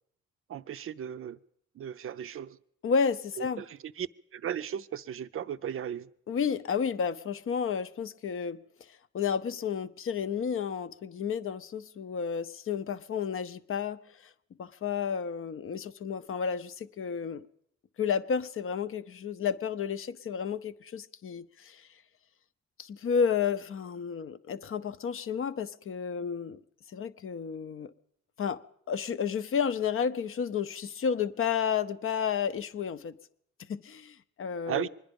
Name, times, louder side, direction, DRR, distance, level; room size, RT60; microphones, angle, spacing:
voice 1, 0.5-1.4 1.8-2.6 3.4-4.1 4.3-6.1 34.7-34.9, right 9 dB, 45° right, 0.5 m, -36 dB
voice 2, 2.8-3.6 6.3-8.6 8.9-14.0 14.6-17.4 18.0-21.9 22.8-26.6 26.9-27.9 28.4-28.6 28.9-33.1 33.7-34.9, left 6 dB, 45° left, 0.6 m, -31 dB
24.0 x 10.5 x 5.3 m
cardioid pair, 90°, 30 cm